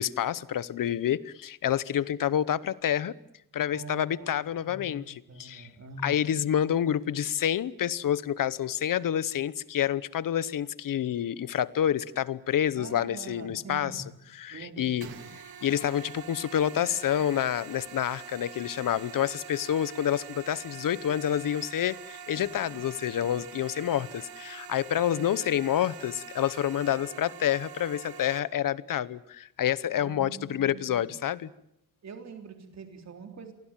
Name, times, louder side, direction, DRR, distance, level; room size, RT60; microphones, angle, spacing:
voice 1, 0.0-3.2 3.5-5.7 6.0-14.0 14.4-15.1 15.6-31.5, left 10 dB, 65° left, 0.9 m, -28 dB
voice 2, 3.7-6.4 12.7-14.1 14.5-15.3 30.0-31.2 32.0-33.5, right 4 dB, 45° right, 3.8 m, -44 dB
sound 1, 15.0-28.4, right 8 dB, 80° right, 2.9 m, -45 dB
29.0 x 24.0 x 7.5 m
wide cardioid pair, 180°, 36 cm